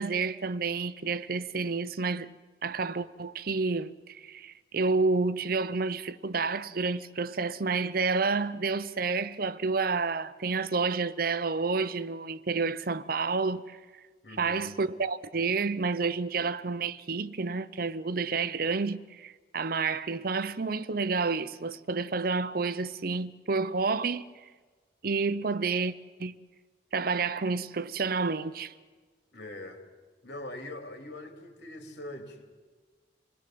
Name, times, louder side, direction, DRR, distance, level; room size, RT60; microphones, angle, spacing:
voice 1, 0.0-2.3 2.6-13.8 14.4-24.3 25.0-25.9 26.2-26.3 26.9-28.7, right 4 dB, 55° right, 0.7 m, -29 dB
voice 2, 14.2-14.8 29.3-29.8 30.2-32.5, left 1 dB, 65° left, 3.4 m, -42 dB
27.5 x 20.5 x 7.8 m
head